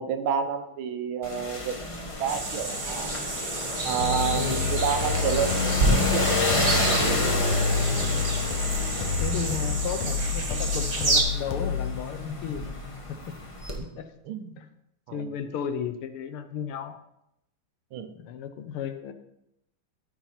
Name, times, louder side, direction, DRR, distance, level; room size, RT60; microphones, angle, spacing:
voice 1, 0.0-1.8 2.2-3.1 3.8-7.5 13.8-13.9 14.2-14.6 15.1-15.3 17.9-18.1, right 7 dB, 75° right, 8 dB, 1.6 m, -30 dB
sound 1, 1.2-13.8, left 2 dB, 20° left, 0.9 m, -30 dB
sound 2, 2.3-11.2, right 2 dB, 35° right, 1.4 m, -29 dB
sound 3, 4.0-12.0, left 7 dB, 65° left, 1.6 m, -30 dB
voice 2, 4.3-4.7 7.9-8.2 9.2-12.7 13.3-13.4 14.0-14.1 14.6-14.7 15.1-17.0 18.2-19.1, left 7 dB, 85° left, 9 dB, 1.7 m, -34 dB
13.5 x 4.9 x 4.3 m, 0.83 s
omnidirectional pair, 2.3 m